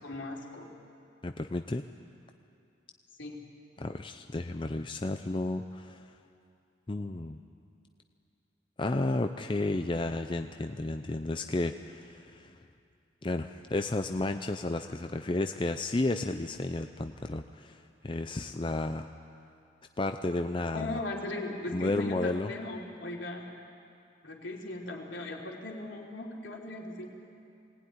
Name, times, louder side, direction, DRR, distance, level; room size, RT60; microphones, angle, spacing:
voice 1, 0.0-0.7 3.2-3.4 20.7-23.5 24.2-27.1, left 2 dB, 75° left, -1 dB, 3.4 m, -38 dB
voice 2, 1.2-1.8 3.8-6.1 6.9-7.4 8.8-12.5 13.2-19.1 20.0-21.0 21.7-22.5, left 2 dB, 25° left, 7 dB, 0.5 m, -32 dB
21.5 x 18.0 x 9.8 m, 2.6 s
head